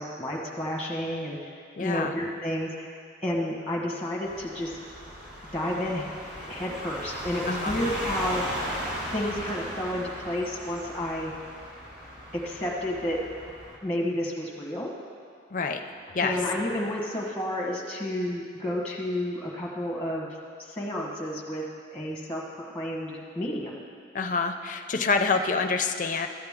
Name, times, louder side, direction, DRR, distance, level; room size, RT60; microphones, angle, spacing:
voice 1, 0.0-1.4 1.8-2.9 3.2-4.8 5.5-6.1 6.4-8.4 9.1-11.3 12.3-13.2 13.8-14.9 16.2-20.3 20.6-21.6 21.9-23.8, left 1 dB, 5° left, -3 dB, 1.1 m, -31 dB
voice 2, 1.8-2.1 7.5-7.7 15.5-15.8 16.1-16.4 24.1-26.3, left 4 dB, 40° left, 6 dB, 0.5 m, -27 dB
sound 1, 4.2-13.8, equal, 45° right, 2.0 m, -37 dB
13.5 x 8.0 x 3.6 m, 2.2 s
head